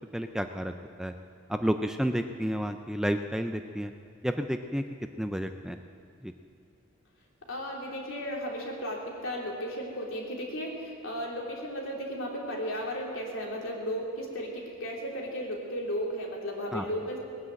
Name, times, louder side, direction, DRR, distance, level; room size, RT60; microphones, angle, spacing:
voice 1, 0.1-0.7 1.0-1.1 1.5-3.9 4.2-4.8 5.2-5.8 6.2-6.3 16.7-16.9, equal, 5° right, 6 dB, 0.4 m, -30 dB
voice 2, 7.5-17.2, equal, 75° left, -2 dB, 3.1 m, -35 dB
19.5 x 9.8 x 7.6 m, 2.4 s
head